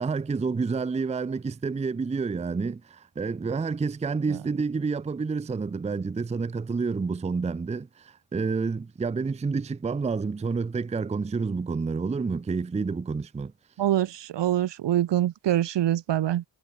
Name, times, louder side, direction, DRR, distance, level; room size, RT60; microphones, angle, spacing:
voice 1, 0.0-13.5, right 4 dB, 15° right, 0.5 m, -29 dB
voice 2, 13.8-16.4, right 12 dB, 70° right, 0.9 m, -25 dB
cardioid pair, 95°, 44 cm